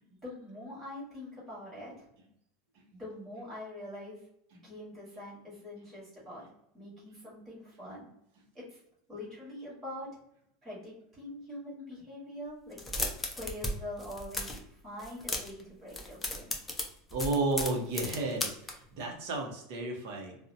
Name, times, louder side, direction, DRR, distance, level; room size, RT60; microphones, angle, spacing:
voice 1, 0.1-2.1 2.9-4.2 4.6-6.4 6.7-8.1 8.5-8.8 9.1-10.1 10.6-12.8 13.3-16.5, left 1 dB, 20° right, -7 dB, 1.2 m, -44 dB
sound 1, 12.7-13.7 14.0-14.6 15.0-15.6 15.9-18.7, left 2 dB, 10° left, 0.3 m, -35 dB
voice 2, 17.1-20.4, right 2 dB, 60° right, 1 dB, 0.6 m, -32 dB
2.6 x 2.0 x 2.5 m, 0.76 s
supercardioid pair, 170°, 0 cm